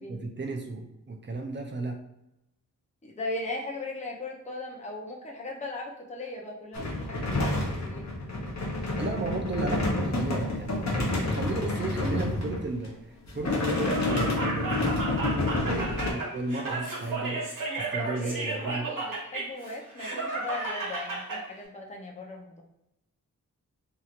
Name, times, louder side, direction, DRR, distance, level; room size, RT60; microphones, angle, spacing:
voice 1, 0.1-2.0 9.0-15.2 15.5-17.4 17.8-18.9, right 3 dB, 30° right, 4 dB, 0.6 m, -34 dB
voice 2, 3.0-8.1 18.0-22.6, left 2 dB, 20° left, -1 dB, 0.7 m, -38 dB
sound 1, 6.7-12.9 13.2-16.1, left 2 dB, 50° left, 0.8 m, -29 dB
Laughter, 13.7-21.4, right 3 dB, 65° right, 1.2 m, -33 dB
2.8 x 2.8 x 2.5 m, 0.84 s
cardioid pair, 50°, 35 cm